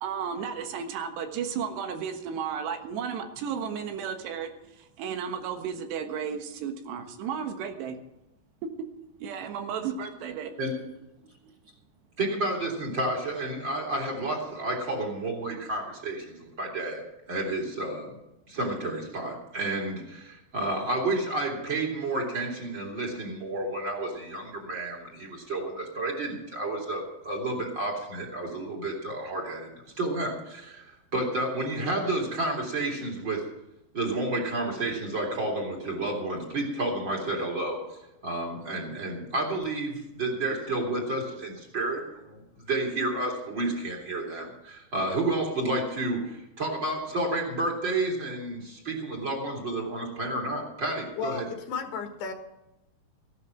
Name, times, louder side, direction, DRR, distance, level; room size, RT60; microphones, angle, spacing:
voice 1, 0.0-4.5 4.8-8.0 8.6-8.7 9.2-10.6, right 7 dB, 85° right, 6 dB, 3.6 m, -33 dB
voice 2, 12.2-17.0 17.3-18.1 18.5-29.7 30.0-33.5 33.9-51.4, right 2 dB, 30° right, 0 dB, 3.5 m, -31 dB
voice 3, 51.2-52.3, left 5 dB, 80° left, 6 dB, 3.5 m, -34 dB
15.5 x 11.0 x 6.0 m, 0.93 s
omnidirectional pair, 4.8 m